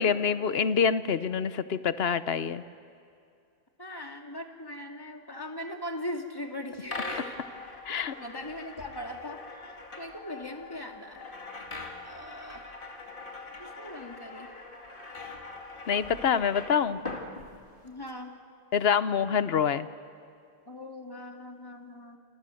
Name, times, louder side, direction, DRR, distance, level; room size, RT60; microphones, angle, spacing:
voice 1, 0.0-2.6 7.8-8.1 15.9-17.0 18.7-19.9, left 7 dB, 75° left, 14 dB, 1.1 m, -26 dB
voice 2, 3.8-7.4 7.9-11.4 12.0-12.8 13.6-14.5 17.8-18.4 19.3-19.5 20.7-22.2, left 1 dB, 20° left, 2 dB, 2.4 m, -40 dB
sound 1, 6.9-18.1, left 3 dB, 55° left, 2.4 m, -42 dB
27.0 x 27.0 x 7.7 m, 2.4 s
omnidirectional pair, 1.0 m